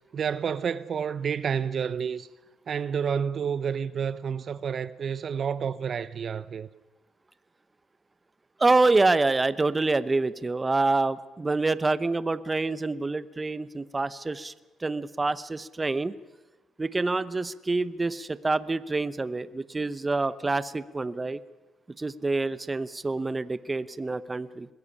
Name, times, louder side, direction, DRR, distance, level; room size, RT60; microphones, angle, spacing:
voice 1, 0.1-2.3 2.7-6.7, right 7 dB, 55° right, 0.7 m, -29 dB
voice 2, 8.6-14.5 14.8-16.1 16.8-21.4 22.0-24.7, right 3 dB, 20° right, 0.8 m, -26 dB
21.0 x 15.5 x 9.9 m
cardioid pair, 90°, 0 cm